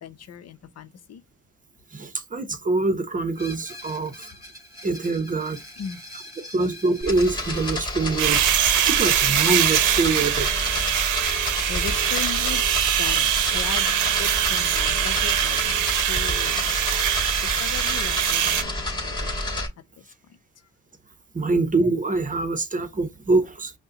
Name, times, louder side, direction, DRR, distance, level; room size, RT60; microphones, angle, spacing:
voice 1, 0.0-1.2 5.8-6.0 11.7-12.6 13.0-13.9 14.2-16.8 17.4-19.6, left 8 dB, 55° left, 0.8 m, -37 dB
voice 2, 1.9-4.3 4.8-5.6 6.4-8.5 8.8-10.5 21.3-23.7, right 3 dB, 25° right, 0.9 m, -24 dB
Screech, 3.3-13.0, left 1 dB, 10° right, 2.3 m, -46 dB
sound 1, 7.0-19.7, left 1 dB, 15° left, 2.4 m, -29 dB
sound 2, 8.2-18.6, right 12 dB, 80° right, 0.7 m, -23 dB
5.4 x 2.2 x 3.8 m
cardioid pair, 90°, 30 cm